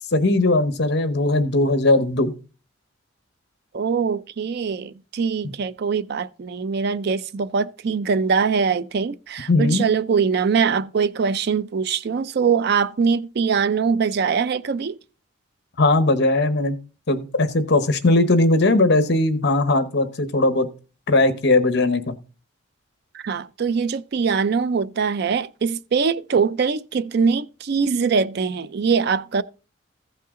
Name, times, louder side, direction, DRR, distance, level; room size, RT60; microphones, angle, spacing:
voice 1, 0.1-2.3 9.5-9.9 15.8-16.8 17.1-20.7 21.1-22.1, left 2 dB, 55° left, 1.0 m, -19 dB
voice 2, 3.7-15.0 23.1-29.4, right 5 dB, 50° right, 0.4 m, -22 dB
14.5 x 5.6 x 3.6 m
head